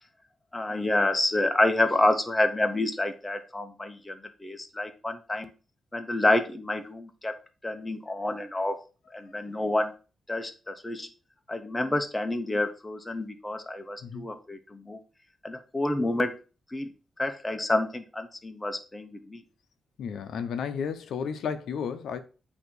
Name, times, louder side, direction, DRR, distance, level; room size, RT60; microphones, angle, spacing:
voice 1, 0.5-5.5 5.9-7.4 7.6-8.8 9.1-9.9 10.3-11.1 11.5-15.0 15.4-16.4 16.7-19.4, left 1 dB, 15° left, 0.9 m, -28 dB
voice 2, 14.0-14.3 20.0-22.2, left 7 dB, 85° left, 0.7 m, -33 dB
8.1 x 2.9 x 6.2 m
wide cardioid pair, 130°, 0 cm